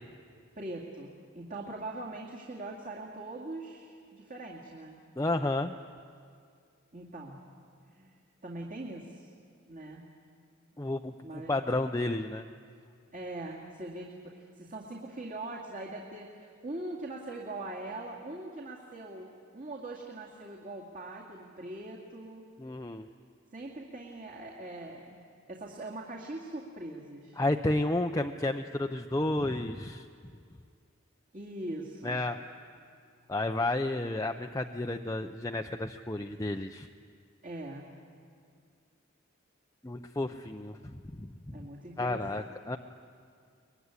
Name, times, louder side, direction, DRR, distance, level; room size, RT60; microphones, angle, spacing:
voice 1, 0.6-5.0 6.9-7.4 7.8-9.3 9.7-10.0 11.2-11.6 13.1-19.3 19.5-22.5 23.5-27.4 31.3-32.2 37.4-37.9 41.5-42.5, right 2 dB, 40° right, -2 dB, 2.3 m, -42 dB
voice 2, 5.2-5.8 10.8-12.5 22.6-23.1 27.4-30.1 32.0-32.4 33.3-36.9 39.8-41.5 42.0-42.8, left 2 dB, 15° left, 4 dB, 0.6 m, -31 dB
23.5 x 21.5 x 9.8 m, 2.3 s
head